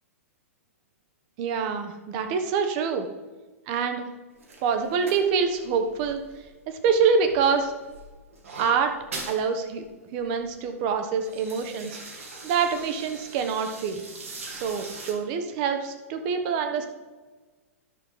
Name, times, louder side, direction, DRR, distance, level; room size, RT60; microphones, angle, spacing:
voice 1, 1.4-3.1 3.7-4.0 4.6-6.2 6.7-7.7 8.6-8.9 9.3-9.8 10.1-12.0 12.4-14.0 14.5-16.9, right 6 dB, 40° right, 6 dB, 1.3 m, -25 dB
sound 1, 4.4-6.9 7.2-9.4 9.8-9.9 10.2-10.6 11.0-15.1, right 3 dB, 65° right, 2.3 m, -42 dB
12.0 x 6.6 x 3.8 m, 1.3 s
figure-of-eight pair, 100°, 8 cm